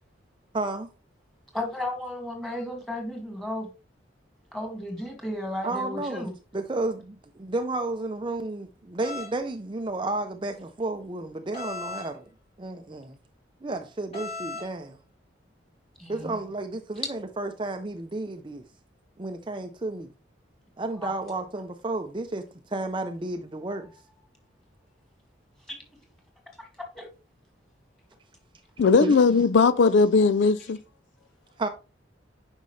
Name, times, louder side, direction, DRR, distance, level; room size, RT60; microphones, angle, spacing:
voice 1, 0.5-0.9 5.6-12.2 12.6-13.2 13.6-15.0 16.1-18.6 19.2-20.1 20.8-23.9 29.0-29.1 31.6-31.7, right 2 dB, 25° right, 0.5 m, -32 dB
voice 2, 1.5-3.7 4.5-6.3 16.0-16.3 21.0-21.1 25.7-25.8 26.6-26.7 26.9-27.1, left 1 dB, ahead, 2.1 m, -34 dB
sound 1, 9.0-9.3 11.5-12.1 14.1-14.7, left 3 dB, 35° left, 2.5 m, -36 dB
voice 3, 28.8-30.8, left 4 dB, 75° left, 0.4 m, -19 dB
9.2 x 5.3 x 3.2 m
head